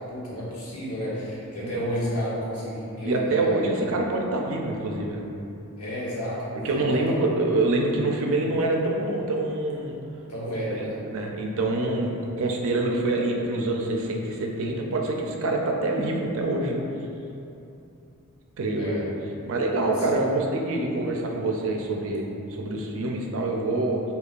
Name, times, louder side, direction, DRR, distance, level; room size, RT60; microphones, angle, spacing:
voice 1, 0.0-3.8 5.8-7.3 8.2-8.3 10.3-11.0 18.7-19.0 19.8-20.2, equal, 85° left, -7 dB, 1.0 m, -31 dB
voice 2, 3.0-5.3 6.6-10.0 10.5-16.8 18.6-19.0 19.5-24.0, right 2 dB, 65° right, 1 dB, 0.4 m, -26 dB
4.5 x 2.8 x 2.4 m, 2.8 s
head